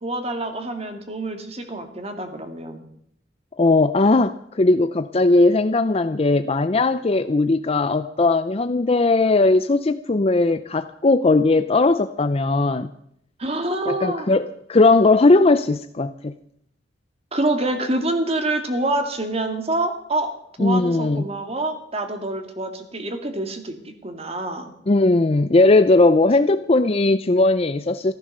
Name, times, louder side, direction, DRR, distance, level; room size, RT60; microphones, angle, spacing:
voice 1, 0.0-2.8 13.4-14.3 17.3-20.3 20.6-24.7, right 2 dB, 35° right, 6 dB, 2.1 m, -26 dB
voice 2, 3.6-12.9 13.9-16.3 20.6-21.2 24.9-28.1, left 2 dB, 35° left, 11 dB, 0.5 m, -18 dB
15.0 x 14.0 x 6.6 m, 0.71 s
head